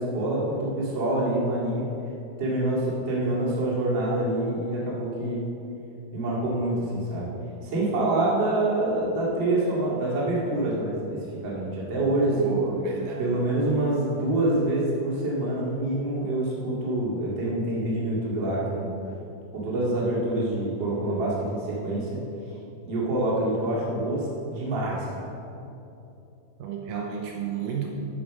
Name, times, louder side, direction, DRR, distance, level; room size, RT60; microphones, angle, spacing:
voice 1, 0.0-1.8 2.4-5.4 6.1-7.3 7.6-12.6 13.2-18.9 19.5-22.2 22.8-25.3, right 1 dB, 40° right, -6 dB, 1.9 m, -26 dB
voice 2, 12.3-13.2 26.6-27.9, right 6 dB, 90° right, 0 dB, 1.9 m, -31 dB
10.5 x 4.8 x 6.3 m, 2.8 s
omnidirectional pair, 4.7 m